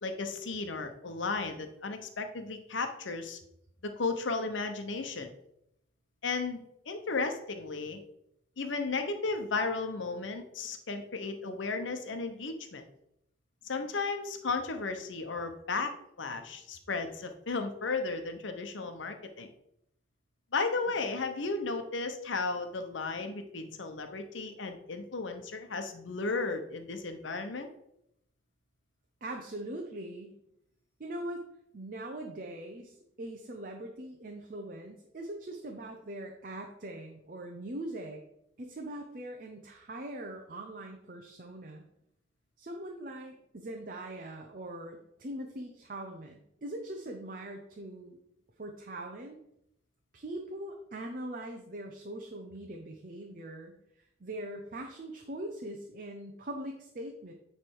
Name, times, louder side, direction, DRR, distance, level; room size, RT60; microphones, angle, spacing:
voice 1, 0.0-3.4 3.8-5.3 6.2-8.0 8.6-12.8 13.6-15.9 16.2-19.5 20.5-27.7, left 3 dB, 90° left, 6 dB, 0.9 m, -34 dB
voice 2, 29.2-30.4 31.0-31.4 31.7-38.2 38.6-41.9 42.6-48.2 48.6-49.4 50.1-57.3, right 1 dB, 45° right, 3 dB, 0.7 m, -41 dB
9.5 x 3.4 x 4.6 m, 0.78 s
head